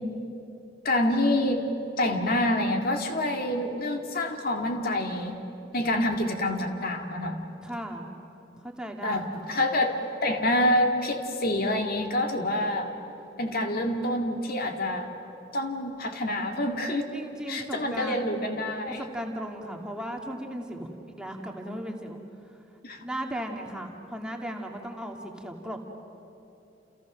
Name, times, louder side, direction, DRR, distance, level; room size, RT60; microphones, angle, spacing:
voice 1, 0.8-1.6 2.0-5.4 5.7-7.5 9.0-12.9 13.4-15.1 15.5-17.1 17.5-19.0 22.8-23.0, left 1 dB, 55° left, 4 dB, 2.1 m, -27 dB
voice 2, 7.6-8.1 8.6-9.5 17.1-18.4 19.0-22.2 22.5-22.6 23.0-25.8, equal, 5° right, 1 dB, 2.0 m, -36 dB
30.0 x 29.5 x 6.3 m, 2.9 s
head